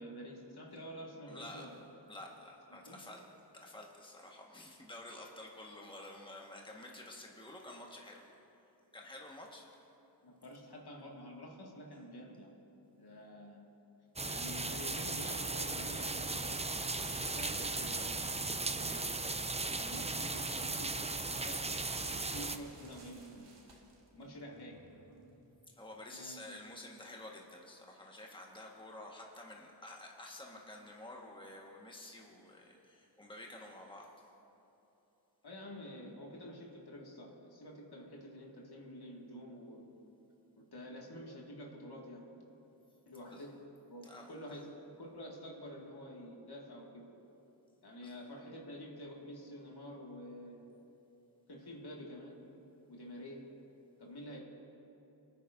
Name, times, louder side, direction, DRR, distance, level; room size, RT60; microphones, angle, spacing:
voice 1, 0.0-1.8 2.7-3.1 10.2-12.5 13.0-13.6 14.3-16.7 17.1-19.2 19.8-21.7 22.1-23.6 24.1-24.9 26.1-26.6 35.4-39.9 40.6-42.3 43.1-43.6 43.9-47.1 47.8-50.7 51.5-52.4 52.9-53.5 54.0-54.4, equal, 60° left, -2 dB, 2.1 m, -49 dB
voice 2, 1.3-1.7 2.1-3.3 3.5-8.3 8.9-9.8 25.7-34.2 43.3-43.4 44.0-44.3 48.0-48.1, left 1 dB, 10° left, -1 dB, 1.5 m, -50 dB
sound 1, 14.2-22.6, right 3 dB, 15° right, 0.5 m, -37 dB
sound 2, 15.9-25.5, right 2 dB, 75° right, 1.8 m, -55 dB
23.0 x 9.5 x 2.7 m, 2.9 s
cardioid pair, 50°, 43 cm